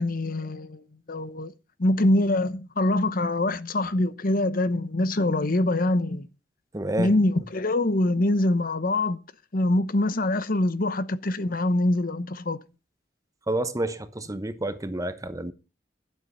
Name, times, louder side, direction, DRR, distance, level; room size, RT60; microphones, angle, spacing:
voice 1, 0.0-1.5 1.8-6.3 7.0-9.2 9.5-12.6, left 1 dB, 50° left, 0.9 m, -24 dB
voice 2, 6.7-7.1 13.5-15.5, right 1 dB, 20° right, 0.9 m, -29 dB
12.0 x 8.2 x 5.6 m
head